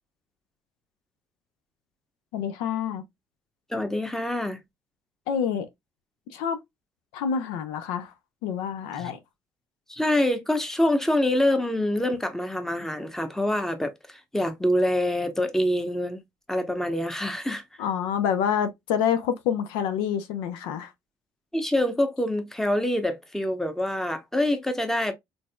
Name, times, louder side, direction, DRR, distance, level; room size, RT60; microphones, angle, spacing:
voice 1, 2.3-3.0 5.3-5.7 6.3-6.6 7.1-8.1 8.4-9.2 17.8-20.9, left 8 dB, 80° left, 0.6 m, -27 dB
voice 2, 3.7-4.6 9.0-9.1 9.9-16.2 16.5-17.6 21.5-25.1, left 1 dB, 5° left, 1.0 m, -25 dB
4.0 x 3.3 x 2.2 m
hypercardioid pair, 55°, 9 cm